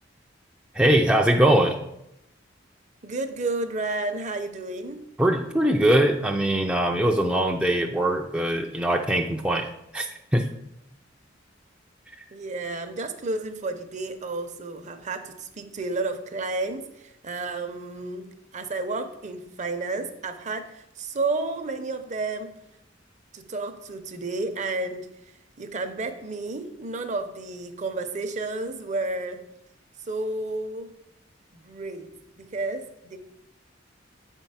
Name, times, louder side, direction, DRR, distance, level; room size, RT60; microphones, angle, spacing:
voice 1, 0.7-1.8 5.2-10.1 10.3-10.5, right 1 dB, 5° right, 2 dB, 0.4 m, -22 dB
voice 2, 3.0-5.0 12.3-22.5 23.3-25.1 25.6-29.4 30.1-30.9 31.5-32.1 32.4-33.2, right 3 dB, 40° right, 8 dB, 0.7 m, -31 dB
7.9 x 4.5 x 5.6 m, 0.83 s
head